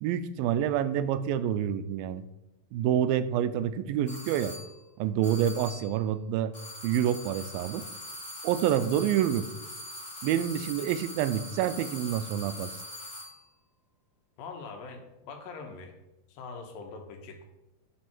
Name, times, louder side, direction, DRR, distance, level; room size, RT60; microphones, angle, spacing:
voice 1, 0.0-2.2 2.7-4.5 5.0-6.5 6.8-7.9 8.4-9.5 10.2-12.7, right 10 dB, 90° right, 13 dB, 2.4 m, -27 dB
sound 1, 4.1-4.8 5.2-6.0 6.5-13.4, left 1 dB, 20° left, 2.0 m, -42 dB
voice 2, 14.4-16.0 16.3-17.5, left 4 dB, 80° left, 4 dB, 2.9 m, -43 dB
12.0 x 5.3 x 4.4 m, 0.95 s
omnidirectional pair, 4.1 m